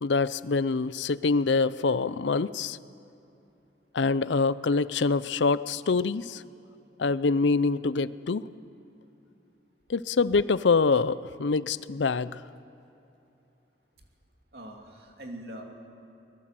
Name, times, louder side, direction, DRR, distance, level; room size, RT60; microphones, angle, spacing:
voice 1, 0.0-2.8 3.9-6.4 7.0-8.4 9.9-12.3, left 4 dB, 85° left, 16 dB, 0.6 m, -25 dB
voice 2, 14.5-15.6, right 1 dB, 60° right, 1 dB, 3.0 m, -42 dB
23.5 x 21.5 x 7.7 m, 2.8 s
head